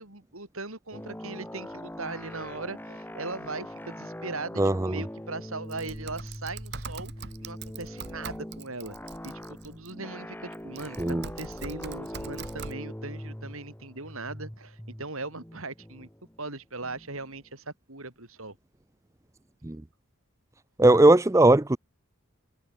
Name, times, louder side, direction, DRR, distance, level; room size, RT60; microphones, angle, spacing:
voice 1, 0.0-9.0 9.2-16.1 16.4-18.6, right 3 dB, 70° right, 5.5 m, -39 dB
sound 1, 0.9-17.4, equal, 10° left, 2.5 m, -42 dB
voice 2, 4.6-4.9 11.0-11.2 19.6-19.8 20.8-21.8, right 2 dB, 15° right, 0.4 m, -19 dB
Typing, 5.7-9.9 10.5-12.8, right 4 dB, 50° right, 1.6 m, -43 dB
head